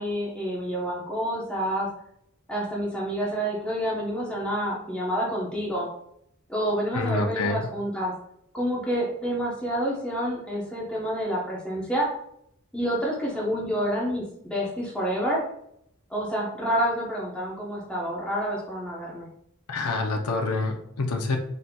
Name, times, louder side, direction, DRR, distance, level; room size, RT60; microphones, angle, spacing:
voice 1, 0.0-1.9 2.5-5.9 6.5-8.1 8.5-12.1 12.7-14.2 14.5-15.4 16.1-19.3, equal, 5° left, -6 dB, 0.8 m, -28 dB
voice 2, 6.9-7.7 19.7-21.4, left 3 dB, 80° left, 3 dB, 0.6 m, -27 dB
4.1 x 3.8 x 2.2 m, 0.72 s
head